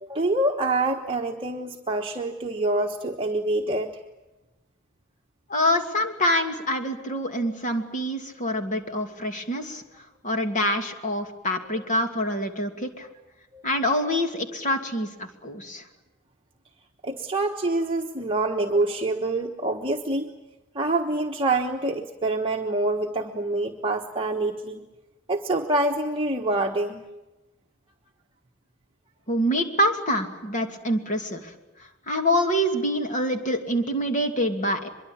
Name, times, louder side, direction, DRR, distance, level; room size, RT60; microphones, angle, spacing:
voice 1, 0.0-4.0 11.7-11.8 13.5-13.6 17.0-20.3 20.7-24.8 25.3-27.0, right 2 dB, 25° right, 2 dB, 1.2 m, -26 dB
voice 2, 5.5-9.8 10.2-13.1 13.6-15.8 29.3-31.5 32.1-34.9, equal, 35° left, 5 dB, 2.6 m, -26 dB
24.0 x 23.0 x 8.8 m, 1.1 s
head